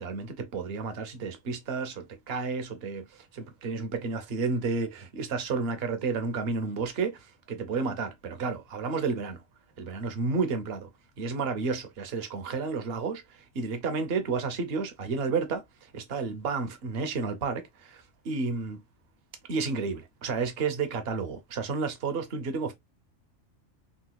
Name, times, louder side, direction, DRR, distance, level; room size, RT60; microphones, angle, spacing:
voice 1, 0.0-9.4 9.8-10.9 11.2-18.8 19.5-22.7, right 4 dB, 60° right, 0.9 m, -31 dB
3.9 x 2.3 x 2.2 m
omnidirectional pair, 1.3 m